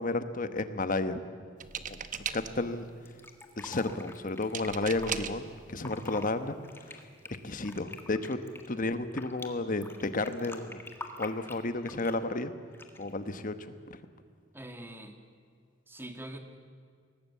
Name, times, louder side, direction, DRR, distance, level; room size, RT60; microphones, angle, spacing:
voice 1, 0.0-1.5 1.8-2.0 2.3-2.9 3.6-7.0 7.4-8.4 8.7-10.8 11.2-12.5 13.0-13.5 13.9-14.0, left 2 dB, 45° left, 10 dB, 1.2 m, -32 dB
sound 1, 1.6-2.8 4.5-5.5 6.4-6.5 6.9-7.2, right 7 dB, 40° right, 1.0 m, -37 dB
Fill (with liquid), 3.1-5.1 5.7-6.3 6.6-9.5 9.8-12.2 12.7-13.1, left 2 dB, 10° left, 1.7 m, -46 dB
voice 2, 14.5-15.2 15.9-16.4, right 1 dB, 10° right, 6 dB, 1.8 m, -44 dB
22.5 x 18.5 x 8.4 m, 2.1 s
head